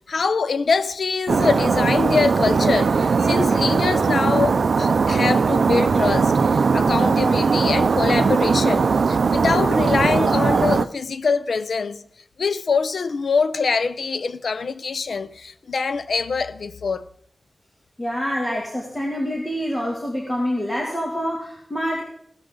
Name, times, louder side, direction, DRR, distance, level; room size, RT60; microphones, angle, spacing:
voice 1, 0.1-6.3 6.7-12.0 12.4-17.1, left 4 dB, 85° left, 0.7 m, -24 dB
sound 1, 1.3-10.9, right 5 dB, 80° right, 0.4 m, -19 dB
voice 2, 18.0-22.0, equal, 20° left, 2.7 m, -26 dB
16.5 x 13.0 x 3.9 m
wide cardioid pair, 105°, 0 cm